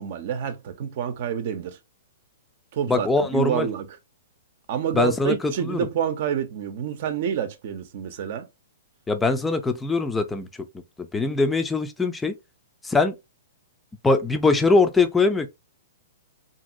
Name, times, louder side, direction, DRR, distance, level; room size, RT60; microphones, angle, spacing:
voice 1, 0.0-1.8 2.7-3.9 4.7-8.5, right 9 dB, 55° right, 0.7 m, -28 dB
voice 2, 2.9-3.7 4.9-5.8 9.1-10.5 11.0-12.3 12.8-13.1 14.0-15.5, left 3 dB, 10° left, 0.5 m, -22 dB
2.8 x 2.7 x 2.5 m
hypercardioid pair, 120°, 0 cm